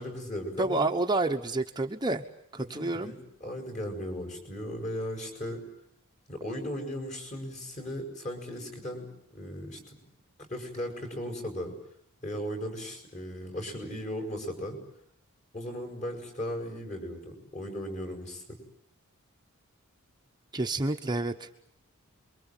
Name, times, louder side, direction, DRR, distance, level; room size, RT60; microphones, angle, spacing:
voice 1, 0.0-0.9 2.6-5.6 6.3-9.1 9.3-9.9 10.5-11.7 12.2-14.8 15.5-18.6, equal, 35° left, 4 dB, 7.5 m, -37 dB
voice 2, 0.6-2.2 2.5-3.1 20.5-21.5, right 2 dB, 20° right, 4 dB, 1.1 m, -29 dB
27.5 x 23.5 x 9.2 m, 0.69 s
head